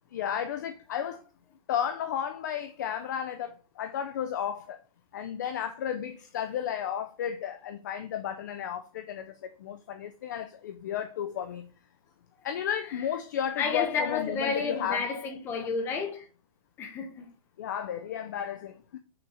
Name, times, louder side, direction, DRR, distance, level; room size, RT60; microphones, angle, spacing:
voice 1, 0.1-1.2 1.7-4.8 5.1-11.7 12.4-15.1 17.6-19.0, left 9 dB, 30° left, 0.4 m, -33 dB
voice 2, 13.6-16.2 16.8-17.3, left 5 dB, 10° left, 0.8 m, -31 dB
5.7 x 4.1 x 4.7 m
hypercardioid pair, 175°, 19 cm